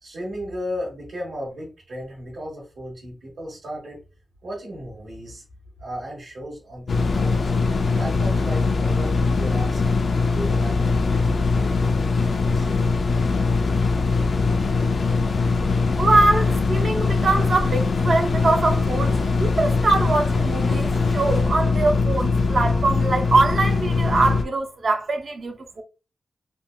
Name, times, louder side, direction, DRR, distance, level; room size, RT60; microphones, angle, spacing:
voice 1, 0.0-4.0 4.4-5.4 5.8-7.5 8.0-9.9 10.3-11.9 12.4-12.7 23.4-24.3, equal, 70° right, 1.3 m, -35 dB
sound 1, 6.9-24.4, left 4 dB, 55° left, 0.4 m, -21 dB
voice 2, 16.0-25.8, right 3 dB, 50° right, 0.5 m, -22 dB
3.7 x 2.2 x 2.3 m
wide cardioid pair, 160°, 0 cm